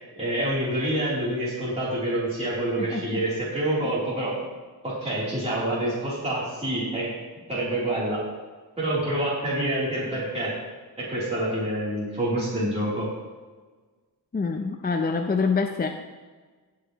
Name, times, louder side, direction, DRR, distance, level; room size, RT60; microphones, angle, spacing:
voice 1, 0.2-4.4 4.8-7.1 7.5-8.2 8.8-10.5 11.0-13.1, right 1 dB, 15° right, -9 dB, 3.4 m, -27 dB
voice 2, 2.8-3.2 14.3-15.9, left 4 dB, 25° left, 4 dB, 0.5 m, -26 dB
17.5 x 6.5 x 3.1 m, 1.4 s
wide cardioid pair, 145°, 39 cm